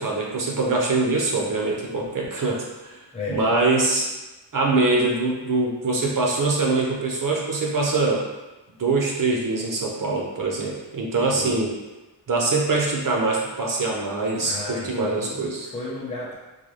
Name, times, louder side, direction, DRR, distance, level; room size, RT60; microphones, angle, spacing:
voice 1, 0.0-2.9 3.3-4.1 4.5-8.2 8.8-11.7 12.3-15.7, right 3 dB, 50° right, -2 dB, 0.7 m, -23 dB
voice 2, 3.1-3.4 11.3-11.7 14.4-16.3, left 2 dB, 15° left, -7 dB, 0.7 m, -33 dB
3.9 x 2.2 x 3.1 m, 1.1 s
wide cardioid pair, 140°, 43 cm